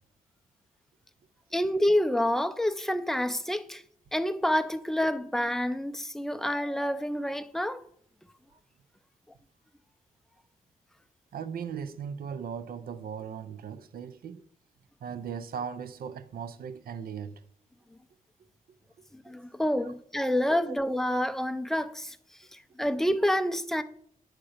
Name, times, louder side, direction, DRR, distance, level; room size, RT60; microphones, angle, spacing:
voice 1, 1.5-3.8 4.1-7.8 19.1-22.2 22.5-23.8, left 1 dB, 5° left, 0.4 m, -28 dB
voice 2, 11.3-14.5 15.0-17.4 19.7-20.0 20.6-20.8, right 7 dB, 75° right, 0.5 m, -38 dB
8.8 x 3.0 x 6.3 m
wide cardioid pair, 105°, 15 cm